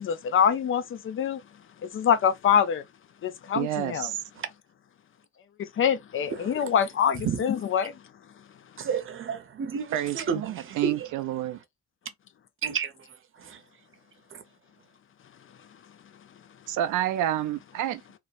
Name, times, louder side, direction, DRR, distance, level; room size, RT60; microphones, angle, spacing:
voice 1, 0.0-1.4 1.9-2.8 3.2-4.1 5.6-7.9, left 8 dB, 45° left, 0.4 m, -25 dB
voice 2, 3.5-4.2 9.9-11.6 16.7-18.0, right 12 dB, 80° right, 0.5 m, -29 dB
voice 3, 6.3-6.6 7.2-7.5 8.8-11.1 11.5-11.6 12.6-13.6 14.3-14.4, right 6 dB, 45° right, 0.8 m, -32 dB
2.9 x 2.0 x 2.4 m
cardioid pair, 90°, 30 cm